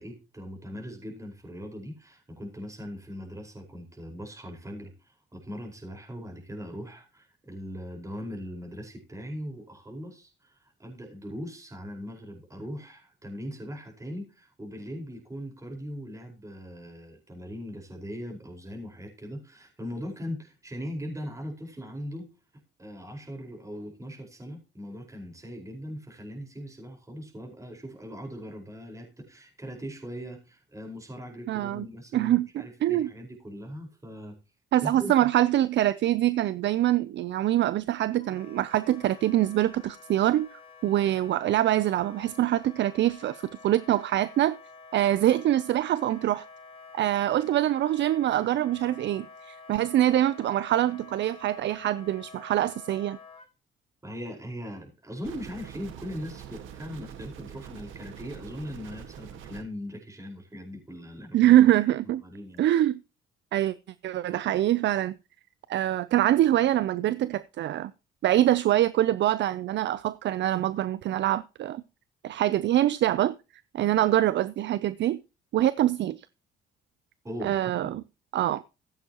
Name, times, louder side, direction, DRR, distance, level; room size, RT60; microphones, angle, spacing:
voice 1, 0.0-10.5 10.8-22.3 22.8-34.3 34.8-35.3 54.0-61.5 62.2-62.6 77.2-77.5 77.8-78.0, equal, 15° right, 4.8 m, -40 dB
voice 2, 31.5-31.9 32.1-32.5 32.8-33.1 34.7-44.6 44.9-46.4 46.9-53.2 61.3-62.2 62.6-63.0 63.5-63.7 64.0-65.2 65.7-67.9 68.2-71.8 72.2-73.3 73.7-75.2 75.5-76.3 77.4-78.0 78.3-78.6, right 13 dB, 65° right, 0.5 m, -24 dB
Wind instrument woodwind instrument, 38.2-53.5, left 4 dB, 30° left, 4.0 m, -49 dB
sound 1, 55.2-59.6, right 9 dB, 90° right, 1.7 m, -44 dB
15.0 x 11.0 x 3.0 m
cardioid pair, 90°, 20 cm